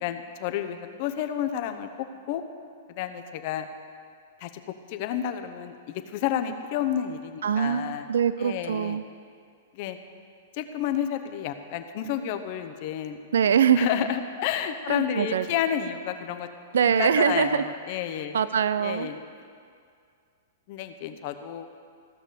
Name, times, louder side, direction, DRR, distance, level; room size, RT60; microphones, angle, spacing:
voice 1, 0.0-1.9 2.3-2.4 2.9-3.7 4.4-4.5 4.9-8.1 8.4-9.0 9.7-10.0 10.5-13.2 13.8-16.5 16.9-18.4 18.8-19.2 20.7-21.7, left 10 dB, 50° left, 8 dB, 0.9 m, -30 dB
voice 2, 7.4-9.0 13.3-13.9 14.9-15.5 16.7-17.6 18.3-19.1, right 8 dB, 80° right, 13 dB, 0.4 m, -23 dB
15.5 x 6.1 x 6.8 m, 2.2 s
hypercardioid pair, 125°, 0 cm